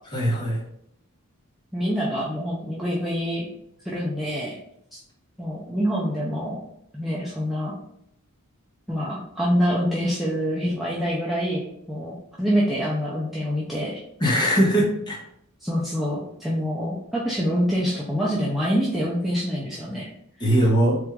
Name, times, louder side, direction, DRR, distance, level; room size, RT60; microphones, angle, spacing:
voice 1, 0.1-0.6 14.2-15.2 20.4-21.0, equal, 20° left, -3 dB, 1.0 m, -20 dB
voice 2, 1.7-3.5 3.8-4.6 4.9-5.0 5.4-6.6 6.9-7.8 8.9-14.0 15.6-20.1, equal, ahead, -7 dB, 0.5 m, -26 dB
3.5 x 2.6 x 4.5 m, 0.74 s
head